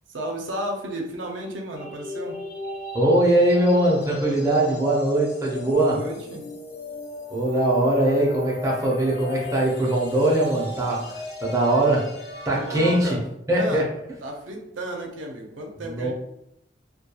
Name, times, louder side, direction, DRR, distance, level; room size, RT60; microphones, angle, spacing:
voice 1, 0.1-2.4 5.2-5.3 5.6-6.4 12.5-13.2 13.6-13.9 14.2-16.1, right 1 dB, 80° right, 1 dB, 0.5 m, -33 dB
sound 1, 1.8-13.1, left 2 dB, 65° left, 0.6 m, -36 dB
voice 2, 2.9-6.0 7.3-12.1 12.5-13.1 13.5-13.8 15.8-16.1, right 1 dB, 15° right, -4 dB, 0.5 m, -21 dB
2.2 x 2.2 x 2.8 m, 0.79 s
head